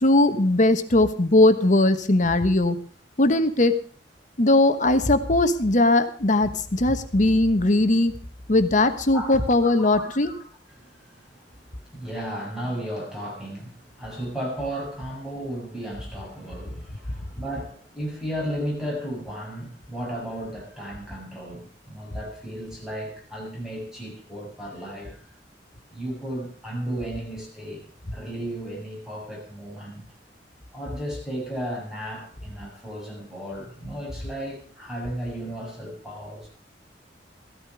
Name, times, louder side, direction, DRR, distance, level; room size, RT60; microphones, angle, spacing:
voice 1, 0.0-2.8 3.2-3.7 4.4-8.1 8.5-10.3, left 2 dB, 45° left, 10 dB, 1.3 m, -19 dB
voice 2, 9.1-25.2 25.9-27.8 28.1-30.0 30.7-36.5, equal, 5° right, -3 dB, 7.0 m, -34 dB
15.0 x 13.0 x 4.8 m, 0.43 s
head